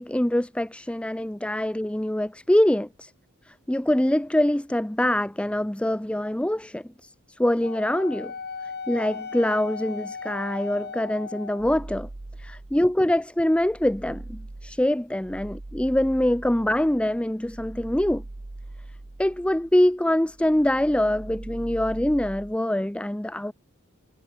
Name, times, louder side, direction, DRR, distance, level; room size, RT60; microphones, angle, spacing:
voice 1, 0.0-3.1 3.5-8.3 8.9-12.1 12.4-18.2 19.2-23.5, left 1 dB, 5° left, 0.5 m, -24 dB
Wind instrument woodwind instrument, 7.6-11.8, left 5 dB, 50° left, 3.3 m, -37 dB
sound 1, 11.6-13.0 13.4-20.0 20.3-22.6, right 2 dB, 35° right, 0.8 m, -41 dB
head